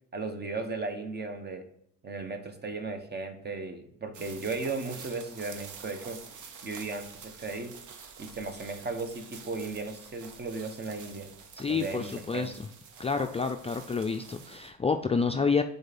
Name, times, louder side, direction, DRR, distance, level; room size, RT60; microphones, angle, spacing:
voice 1, 0.1-1.7 2.0-6.2 6.6-7.7 8.2-11.3 11.7-12.5, right 3 dB, 35° right, 6 dB, 1.1 m, -36 dB
sound 1, 4.1-14.7, right 6 dB, 75° right, 1.0 m, -48 dB
voice 2, 11.6-12.5 13.0-15.6, left 5 dB, 20° left, 5 dB, 0.4 m, -28 dB
6.5 x 4.0 x 4.2 m, 0.72 s
cardioid pair, 90°, 30 cm